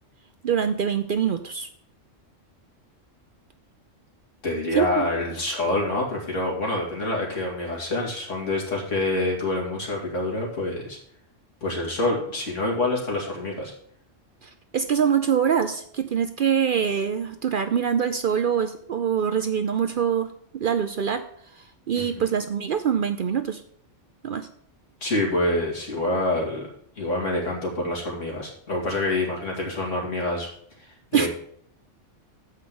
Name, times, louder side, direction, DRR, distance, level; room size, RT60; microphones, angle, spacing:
voice 1, 0.4-1.7 4.8-5.1 14.4-21.2 21.9-23.6 24.2-24.5 31.1-31.3, right 8 dB, 55° right, 8 dB, 0.6 m, -24 dB
voice 2, 4.4-11.0 11.6-13.7 22.0-22.1 25.0-26.7 27.0-30.5 31.1-31.3, left 2 dB, 80° left, -2 dB, 2.8 m, -26 dB
7.5 x 5.4 x 6.9 m, 0.64 s
omnidirectional pair, 1.3 m